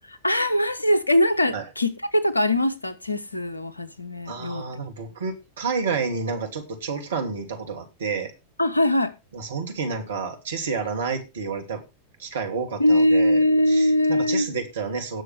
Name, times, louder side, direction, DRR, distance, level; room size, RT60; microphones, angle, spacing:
voice 1, 0.1-4.6 8.6-9.1 12.8-14.5, left 1 dB, 85° left, 1.0 m, -21 dB
voice 2, 4.3-8.3 9.3-11.8 12.2-15.2, right 5 dB, 65° right, 2.7 m, -30 dB
18.0 x 6.5 x 3.4 m
figure-of-eight pair, 90°, 0 cm